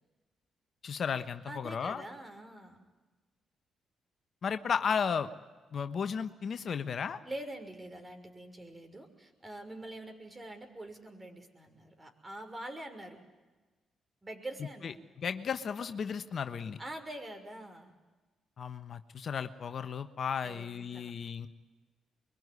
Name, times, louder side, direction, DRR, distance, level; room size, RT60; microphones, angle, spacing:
voice 1, 0.8-2.0 4.4-5.3 5.7-7.2 14.8-14.9 15.2-16.8 18.6-21.5, left 6 dB, 55° left, 9 dB, 1.2 m, -34 dB
voice 2, 1.5-2.8 7.2-13.2 14.2-15.0 16.8-17.9 20.4-21.1, right 1 dB, 25° right, 5 dB, 6.2 m, -45 dB
24.0 x 23.0 x 9.8 m, 1.2 s
supercardioid pair, 55°, 0 cm